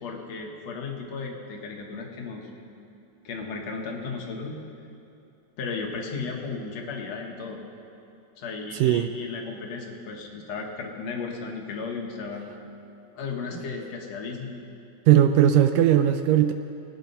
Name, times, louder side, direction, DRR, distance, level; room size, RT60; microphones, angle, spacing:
voice 1, 0.0-2.5 3.2-4.6 5.6-7.6 8.4-12.5 13.2-14.6, left 4 dB, 65° left, 1 dB, 1.8 m, -35 dB
voice 2, 8.7-9.1 15.1-16.5, right 11 dB, 85° right, 9 dB, 2.0 m, -18 dB
19.5 x 9.6 x 5.4 m, 2.6 s
omnidirectional pair, 4.3 m